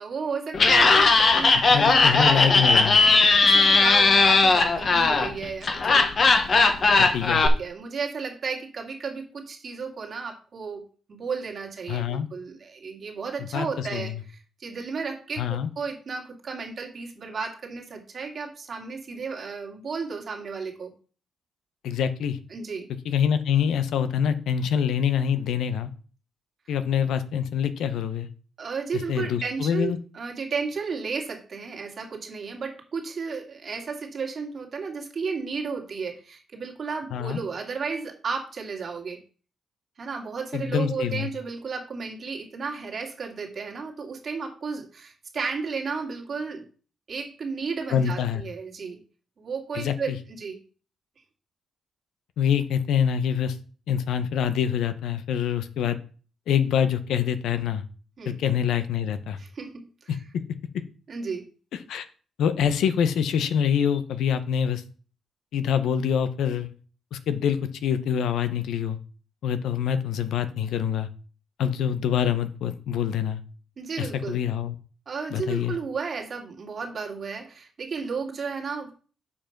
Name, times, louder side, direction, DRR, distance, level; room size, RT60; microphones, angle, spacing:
voice 1, 0.0-2.6 3.0-6.4 6.8-7.0 7.4-10.8 11.1-20.9 22.5-22.9 28.6-39.2 40.0-46.6 47.1-49.0 49.4-50.6 58.2-58.4 59.4-60.2 61.1-61.4 73.8-74.4 75.1-78.9, right 5 dB, 40° right, 1 dB, 2.1 m, -33 dB
Laughter, 0.5-7.5, left 3 dB, 35° left, 1.1 m, -18 dB
voice 2, 1.7-3.0 7.0-7.4 11.9-12.3 13.5-14.1 15.4-15.7 21.8-22.4 23.0-25.9 26.7-28.3 29.1-30.0 37.1-37.4 40.5-41.3 47.9-48.4 49.7-50.2 52.4-53.6 53.9-56.0 56.5-57.8 58.3-59.4 61.9-62.1 62.4-64.8 65.5-66.7 67.1-69.0 69.4-71.1 71.6-73.4 74.0-74.7 75.3-75.7, left 8 dB, 85° left, 12 dB, 0.8 m, -25 dB
7.1 x 5.2 x 5.8 m, 0.39 s
cardioid pair, 145°, 0 cm